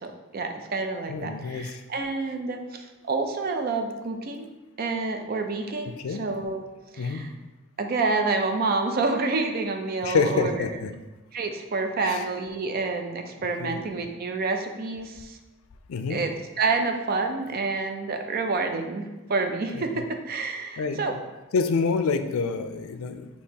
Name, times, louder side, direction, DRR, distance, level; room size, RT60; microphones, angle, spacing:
voice 1, 0.0-4.5 4.8-6.6 6.9-7.3 7.8-10.6 11.3-15.4 16.1-16.3 16.6-19.0 19.3-21.1, right 3 dB, 45° right, 5 dB, 0.4 m, -28 dB
voice 2, 1.1-1.8 5.9-6.2 7.0-7.2 10.0-10.9 12.0-12.3 13.6-13.8 15.9-16.2 19.7-19.8 20.8-21.2 21.5-23.3, left 4 dB, 85° left, 8 dB, 0.4 m, -27 dB
6.3 x 2.9 x 2.8 m, 1.1 s
head